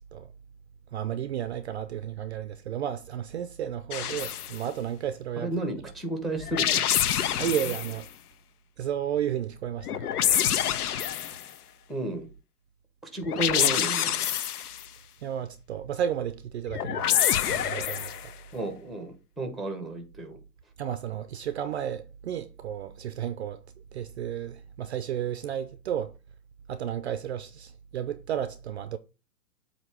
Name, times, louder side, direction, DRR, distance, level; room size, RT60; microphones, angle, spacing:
voice 1, 0.9-5.5 7.4-8.1 8.8-10.1 15.2-17.1 17.5-18.3 20.8-23.6 23.9-26.2 26.7-29.0, right 10 dB, 45° right, 0.5 m, -32 dB
sound 1, 3.9-4.6 6.4-8.0 9.8-11.5 13.2-14.9 16.7-18.3, left 10 dB, 65° left, 0.8 m, -27 dB
voice 2, 5.4-7.1 11.2-11.4 11.9-12.3 13.0-14.2 18.5-20.4, right 2 dB, ahead, 0.8 m, -33 dB
8.0 x 2.9 x 5.6 m
hypercardioid pair, 140°, 49 cm